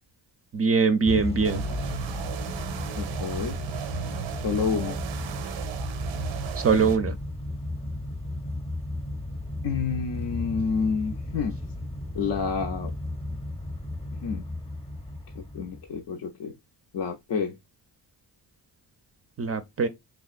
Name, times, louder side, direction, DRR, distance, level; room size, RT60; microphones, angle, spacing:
voice 1, 0.5-1.6 6.6-7.2 19.4-19.9, right 5 dB, 35° right, 0.4 m, -22 dB
voice 2, 1.1-1.6 2.9-3.6 4.4-5.0 9.6-11.6 12.1-13.0 14.1-14.5 15.3-16.5 16.9-17.6, left 5 dB, 65° left, 0.5 m, -29 dB
Motor vehicle (road) / Engine starting / Accelerating revving vroom, 1.1-16.0, left 1 dB, 15° left, 0.6 m, -34 dB
sound 1, 1.4-7.0, right 8 dB, 85° right, 0.5 m, -35 dB
3.3 x 2.3 x 2.4 m
cardioid pair, 60°, 45 cm